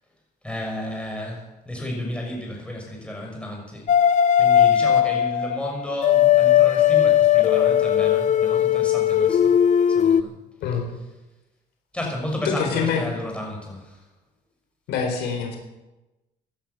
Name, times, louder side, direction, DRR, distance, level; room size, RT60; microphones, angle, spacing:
voice 1, 0.4-3.9 4.4-9.5 9.9-10.3 10.9-11.1 11.9-14.0, left 1 dB, 5° left, 0 dB, 6.0 m, -32 dB
sound 1, 3.9-10.2, left 10 dB, 45° left, 0.8 m, -18 dB
voice 2, 12.4-13.1 14.9-15.6, left 6 dB, 80° left, 3 dB, 4.4 m, -25 dB
16.0 x 11.5 x 7.1 m, 1.0 s
cardioid pair, 110°, 17 cm